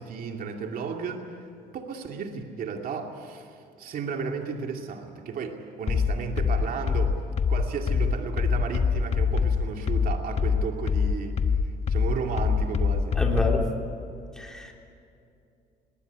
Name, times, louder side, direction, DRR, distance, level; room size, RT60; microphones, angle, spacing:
voice 1, 0.0-7.2 7.5-11.4 11.9-13.1, right 5 dB, 55° right, 3 dB, 2.5 m, -34 dB
sound 1, 5.9-13.7, left 6 dB, 40° left, 1.2 m, -24 dB
voice 2, 13.2-13.6 14.4-14.7, left 1 dB, 5° left, 0 dB, 3.5 m, -28 dB
20.5 x 18.5 x 9.8 m, 2.5 s
cardioid pair, 110°, 17 cm